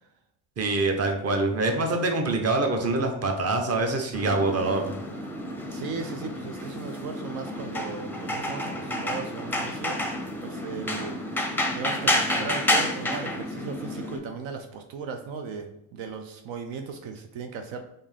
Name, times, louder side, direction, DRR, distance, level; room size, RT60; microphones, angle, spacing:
voice 1, 0.6-4.9, right 2 dB, 30° right, 4 dB, 0.8 m, -25 dB
sound 1, 4.1-14.2, left 1 dB, 5° left, 0.5 m, -30 dB
voice 2, 5.7-10.0 10.4-11.2 11.5-17.8, right 5 dB, 70° right, 5 dB, 0.6 m, -37 dB
3.5 x 2.7 x 3.3 m, 0.84 s
supercardioid pair, 75°, 48 cm